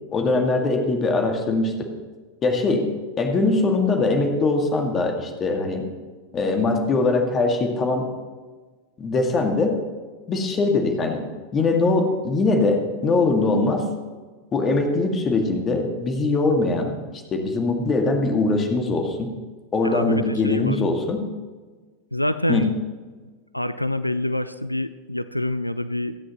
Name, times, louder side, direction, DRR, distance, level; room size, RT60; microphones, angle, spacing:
voice 1, 0.1-1.9 2.4-2.9 3.2-5.9 6.3-8.1 9.0-9.8 10.3-11.2 11.5-13.9 14.5-19.3 19.7-21.2 22.5-22.7, left 3 dB, 25° left, 4 dB, 2.0 m, -22 dB
voice 2, 19.8-20.8 22.1-22.7 23.5-26.2, left 1 dB, 90° left, 14 dB, 0.4 m, -26 dB
27.0 x 9.8 x 3.0 m, 1.4 s
figure-of-eight pair, 90°, 0 cm